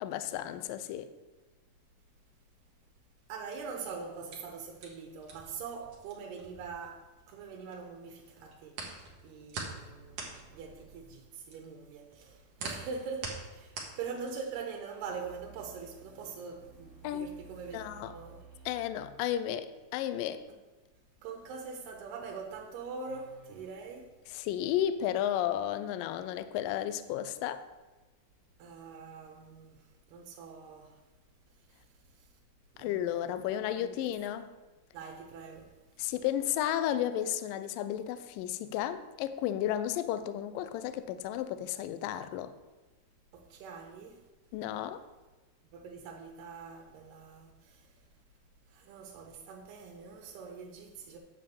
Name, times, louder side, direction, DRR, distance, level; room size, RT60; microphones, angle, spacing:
voice 1, 0.0-1.1 17.0-17.3 17.7-18.1 18.7-20.4 24.3-27.6 32.8-34.5 36.0-42.5 44.5-45.0, left 11 dB, 85° left, 1.9 m, -33 dB
voice 2, 3.3-8.8 9.2-18.6 21.2-24.1 28.6-31.0 31.7-31.8 32.8-33.5 33.7-34.1 34.9-35.7 43.3-44.2 45.7-47.9 48.7-51.2, right 5 dB, 85° right, 2.9 m, -43 dB
sound 1, 3.8-7.7 8.0-14.6, right 4 dB, 55° right, 1.7 m, -44 dB
sound 2, 9.8-11.2 15.0-19.2 23.0-23.7, right 4 dB, 30° left, 1.2 m, -55 dB
9.9 x 4.1 x 6.9 m
omnidirectional pair, 4.5 m